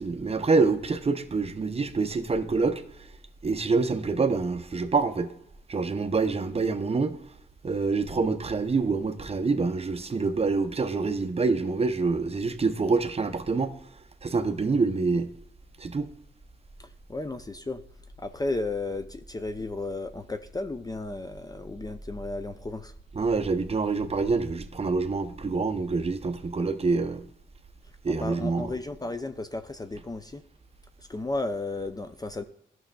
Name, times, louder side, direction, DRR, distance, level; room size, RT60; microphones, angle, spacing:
voice 1, 0.0-2.8 3.4-5.3 5.7-7.2 7.6-13.7 14.2-15.3 15.8-16.1 23.1-27.2 28.0-28.7, right 4 dB, 30° right, 0.6 m, -26 dB
voice 2, 16.8-17.8 18.2-22.9 28.2-30.4 31.0-32.4, left 2 dB, 20° left, 0.4 m, -34 dB
11.5 x 6.0 x 2.3 m
cardioid pair, 70°, 20 cm